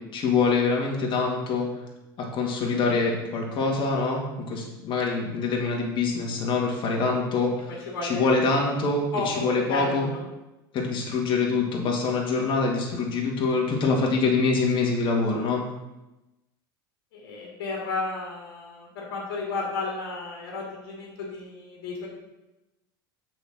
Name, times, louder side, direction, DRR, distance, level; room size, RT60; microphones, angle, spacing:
voice 1, 0.1-1.7 2.2-4.2 4.5-7.7 8.0-10.1 10.7-15.6, left 4 dB, 45° left, -1 dB, 2.1 m, -25 dB
voice 2, 7.7-8.3 9.1-9.9 17.1-22.1, left 3 dB, 70° left, -2 dB, 2.1 m, -33 dB
6.3 x 4.6 x 6.3 m, 1.0 s
hypercardioid pair, 90°, 12 cm